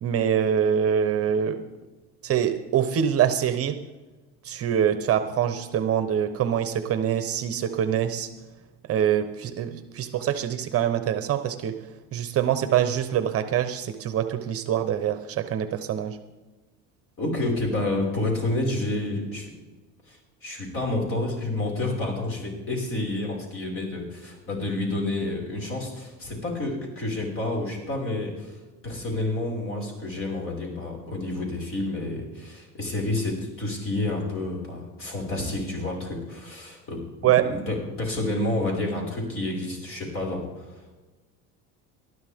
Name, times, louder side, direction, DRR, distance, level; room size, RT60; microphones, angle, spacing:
voice 1, 0.0-1.6 2.2-3.8 4.4-8.3 8.9-11.7 12.1-16.2 37.2-37.5, right 9 dB, 40° right, 9 dB, 1.0 m, -24 dB
voice 2, 17.2-19.5 20.1-28.6 28.8-41.0, left 2 dB, 40° left, -1 dB, 5.6 m, -29 dB
20.0 x 12.5 x 3.6 m, 1.2 s
cardioid pair, 125°, 35 cm